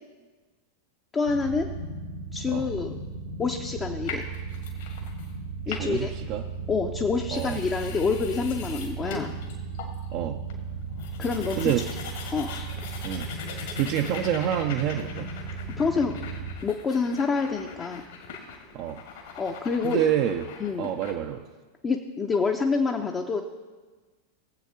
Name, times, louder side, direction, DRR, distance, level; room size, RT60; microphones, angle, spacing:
voice 1, 1.1-1.7 2.3-2.9 3.4-4.2 5.7-6.1 6.7-9.3 11.2-11.7 12.3-12.5 15.8-16.2 16.6-18.0 19.4-20.0 20.6-20.9 21.8-23.4, left 4 dB, 20° left, 2 dB, 0.7 m, -27 dB
sound 1, 1.2-16.5, right 4 dB, 85° left, 1.8 m, -36 dB
sound 2, 4.1-5.3 5.6-6.1 6.9-7.0 7.2-10.1 10.5-10.6 10.8-21.1, left 5 dB, 55° left, 1.8 m, -41 dB
voice 2, 5.7-6.4 7.3-7.6 10.1-10.4 11.6-11.9 13.0-13.3 13.8-15.3 18.7-19.0 19.8-20.5 20.8-21.4, right 11 dB, 45° right, 4 dB, 0.5 m, -27 dB
18.5 x 7.9 x 2.8 m, 1.3 s
figure-of-eight pair, 90°, 0 cm